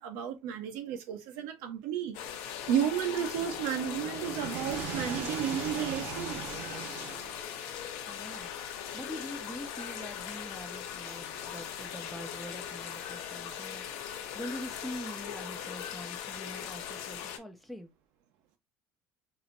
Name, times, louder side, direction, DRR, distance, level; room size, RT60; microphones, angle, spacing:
voice 1, 0.0-6.6, right 9 dB, 75° right, 1.1 m, -33 dB
sound 1, 2.1-17.4, left 9 dB, 70° left, 0.8 m, -40 dB
sound 2, 3.4-7.8, right 6 dB, 40° right, 1.0 m, -40 dB
voice 2, 8.1-8.5 8.8-17.9, equal, ahead, 0.5 m, -44 dB
4.3 x 2.9 x 2.7 m
cardioid pair, 180°, 5 cm